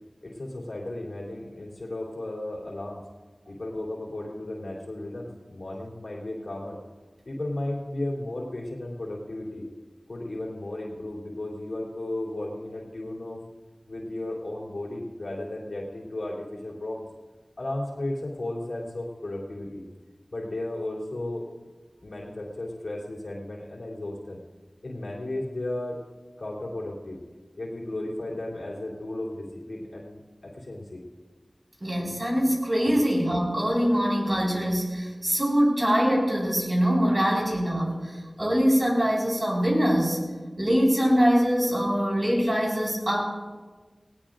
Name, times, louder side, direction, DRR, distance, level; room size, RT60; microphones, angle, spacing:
voice 1, 0.2-3.0 3.5-6.8 7.3-9.7 10.1-13.4 13.9-17.0 17.6-19.8 20.3-21.5 22.0-24.4 24.8-26.0 26.4-27.2 27.6-31.0, left 1 dB, 75° left, -3 dB, 3.4 m, -34 dB
voice 2, 31.8-40.2 40.6-43.2, equal, 35° right, -3 dB, 5.0 m, -23 dB
19.0 x 18.5 x 2.6 m, 1.3 s
wide cardioid pair, 60°, 0 cm